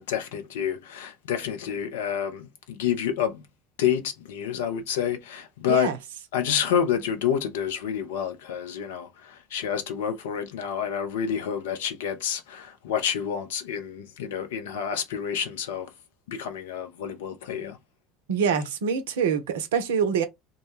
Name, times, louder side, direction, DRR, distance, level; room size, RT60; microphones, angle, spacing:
voice 1, 0.0-3.4 3.8-5.9 6.3-15.9 16.3-17.8, left 8 dB, 65° left, 0.5 m, -29 dB
voice 2, 18.3-20.2, right 6 dB, 70° right, 0.5 m, -25 dB
2.2 x 2.1 x 3.0 m
figure-of-eight pair, 65°, 0 cm